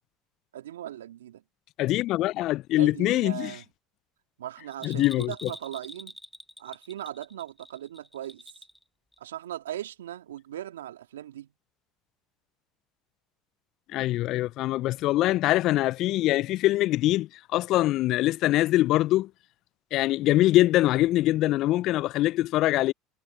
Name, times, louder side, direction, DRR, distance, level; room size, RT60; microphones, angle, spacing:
voice 1, 0.5-1.4 2.8-3.6 4.4-6.2 6.6-8.4 9.2-11.5, right 12 dB, 80° right, 2.9 m, -38 dB
voice 2, 1.8-3.6 4.8-5.5 13.9-19.3 19.9-22.9, left 16 dB, 55° left, 0.5 m, -23 dB
Bell, 4.7-8.8 9.1-9.2, left 1 dB, 5° left, 1.8 m, -46 dB
hypercardioid pair, 70°, 0 cm